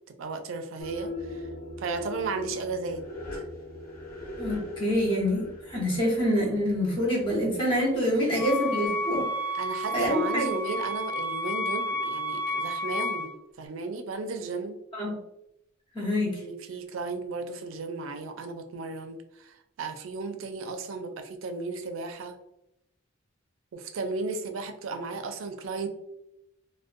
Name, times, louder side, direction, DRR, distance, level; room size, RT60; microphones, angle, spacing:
voice 1, 0.1-1.5 1.8-3.0 3.3-3.4 9.5-13.3 13.6-14.8 16.4-22.4 23.7-25.9, right 3 dB, 75° right, 7 dB, 0.4 m, -35 dB
sound 1, 0.8-8.2, left 1 dB, 55° left, 1.1 m, -40 dB
voice 2, 4.4-9.3 9.9-10.5 14.9-15.2 15.9-16.4, equal, 25° left, -3 dB, 0.8 m, -26 dB
Wind instrument woodwind instrument, 8.4-13.3, equal, 10° right, 0.5 m, -31 dB
2.5 x 2.1 x 2.5 m, 0.82 s
head